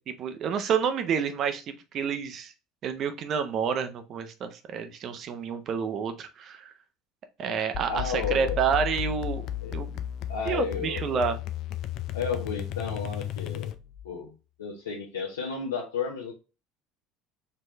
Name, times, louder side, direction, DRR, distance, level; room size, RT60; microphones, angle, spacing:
voice 1, 0.2-2.5 2.8-6.7 7.4-9.4 9.7-9.9 10.4-11.4, right 7 dB, 50° right, 8 dB, 0.8 m, -29 dB
sound 1, 7.7-14.1, left 11 dB, 55° left, 0.4 m, -34 dB
voice 2, 7.9-8.6 9.6-9.8 10.3-11.3 12.1-13.7 14.0-16.3, left 6 dB, 80° left, -4 dB, 1.0 m, -33 dB
4.5 x 3.1 x 3.3 m, 0.30 s
hypercardioid pair, 70°, 0 cm